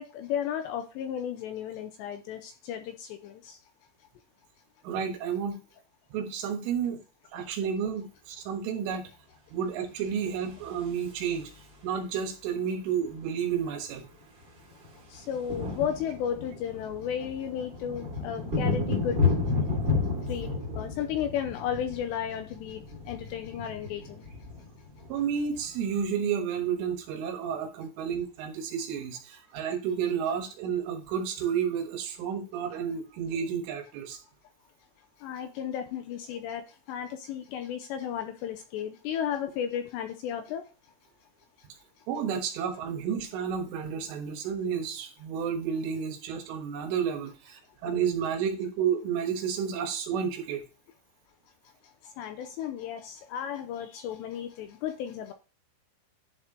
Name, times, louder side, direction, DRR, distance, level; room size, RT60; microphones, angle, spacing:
voice 1, 0.0-3.6 15.1-19.2 20.3-22.8 23.1-24.2 35.2-36.6 36.9-40.6 52.2-55.3, left 9 dB, 90° left, 7 dB, 2.5 m, -34 dB
voice 2, 4.8-5.6 6.1-7.0 7.3-9.1 9.5-11.5 11.8-14.1 25.1-34.2 42.1-50.6, right 7 dB, 80° right, 4 dB, 3.8 m, -31 dB
sound 1, 10.3-11.8 13.2-13.3 13.4-13.7 14.0-26.0, left 4 dB, 30° right, 2.4 m, -32 dB
11.0 x 4.4 x 3.8 m, 0.34 s
omnidirectional pair, 5.7 m